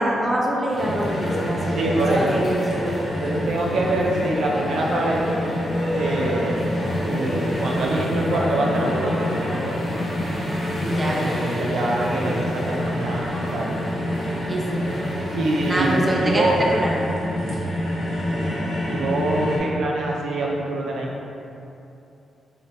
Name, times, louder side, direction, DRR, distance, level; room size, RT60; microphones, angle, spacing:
voice 1, 0.0-1.6 2.1-3.0 10.8-11.2 14.5-14.9 15.7-16.4 16.7-16.9, right 1 dB, 15° right, -3 dB, 0.4 m, -24 dB
sound 1, 0.7-16.0, equal, 40° left, 0.9 m, -34 dB
sound 2, 0.8-19.6, left 1 dB, 85° left, 0.9 m, -27 dB
voice 2, 1.7-2.4 3.2-5.2 5.9-6.8 7.0-9.8 10.9-13.7 15.3-16.6 18.9-21.1, right 2 dB, 80° right, -2 dB, 0.6 m, -25 dB
4.0 x 2.7 x 3.3 m, 2.8 s
wide cardioid pair, 170°, 0 cm